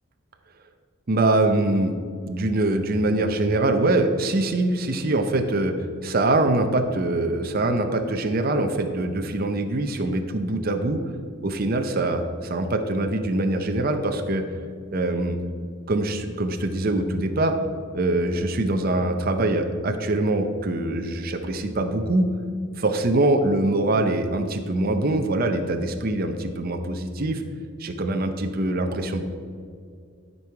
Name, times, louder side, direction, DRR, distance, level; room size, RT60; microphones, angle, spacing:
voice 1, 1.1-11.1 11.4-14.4 14.9-15.4 15.9-17.5 17.9-22.3 22.8-27.4 27.8-29.2, right 2 dB, 45° right, 6 dB, 0.6 m, -23 dB
12.0 x 5.4 x 4.6 m, 2.2 s
head